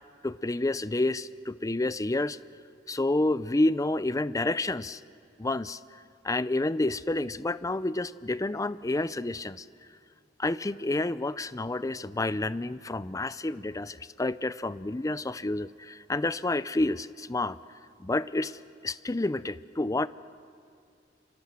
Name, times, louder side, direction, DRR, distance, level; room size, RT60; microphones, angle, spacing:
voice 1, 0.2-2.4 2.9-5.0 5.4-5.8 6.2-9.6 10.4-17.6 18.0-18.6 18.8-20.1, left 2 dB, 20° left, 16 dB, 0.6 m, -29 dB
27.5 x 26.5 x 7.6 m, 2.4 s
head